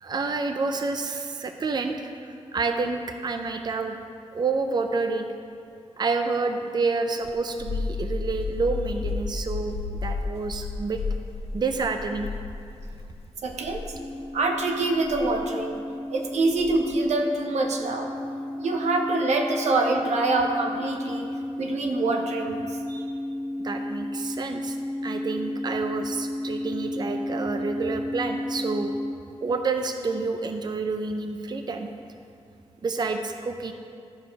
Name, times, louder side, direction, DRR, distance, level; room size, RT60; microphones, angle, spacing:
voice 1, 0.0-4.0 4.3-5.3 6.0-11.0 11.5-12.3 22.9-23.1 23.6-24.8 25.0-28.9 29.4-31.9 32.8-33.7, right 4 dB, 40° right, 6 dB, 0.5 m, -29 dB
sound 1, 7.2-13.1 13.6-13.9 15.1-15.4 16.5-16.9, left 4 dB, 60° left, 0.5 m, -32 dB
voice 2, 13.4-13.9 14.3-15.8 16.1-18.1 18.6-21.3 21.6-22.8, right 2 dB, 85° right, 3 dB, 0.9 m, -25 dB
sound 2, 13.9-29.1, left 1 dB, 10° left, 0.6 m, -33 dB
12.5 x 5.0 x 4.7 m, 2.5 s
cardioid pair, 80°, 11 cm